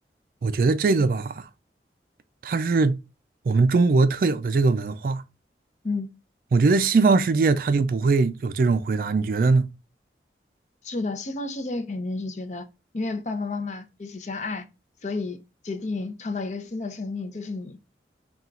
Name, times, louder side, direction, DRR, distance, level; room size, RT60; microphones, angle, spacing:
voice 1, 0.4-1.5 2.4-3.0 3.5-5.2 6.5-9.7, right 3 dB, 50° right, 0.3 m, -21 dB
voice 2, 10.8-12.7 12.9-14.6 15.0-15.4 15.6-17.9, left 3 dB, 40° left, 0.5 m, -31 dB
4.2 x 2.3 x 3.7 m
head